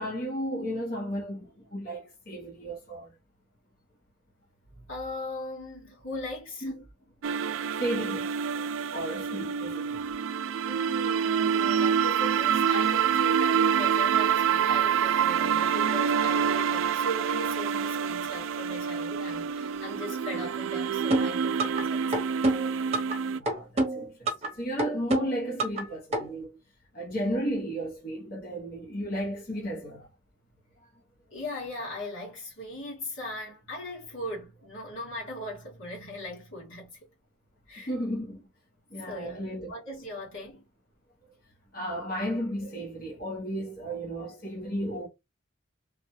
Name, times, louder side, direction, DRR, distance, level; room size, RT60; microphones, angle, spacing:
voice 1, 0.0-3.1 6.6-6.7 7.8-8.3 8.9-10.0 23.2-26.6 26.9-30.1 37.9-38.4 38.9-39.7 41.7-45.1, equal, 50° left, 1.0 m, -34 dB
voice 2, 4.8-6.7 10.7-22.2 31.3-37.1 37.7-37.9 39.1-40.7, left 1 dB, 80° left, 2.1 m, -39 dB
sound 1, 7.2-23.4, right 7 dB, 80° right, 0.3 m, -27 dB
sound 2, 21.1-21.8 22.1-23.2 23.5-24.5 24.8-25.8 26.1-26.2, right 2 dB, 30° right, 0.9 m, -27 dB
3.3 x 2.3 x 3.1 m
head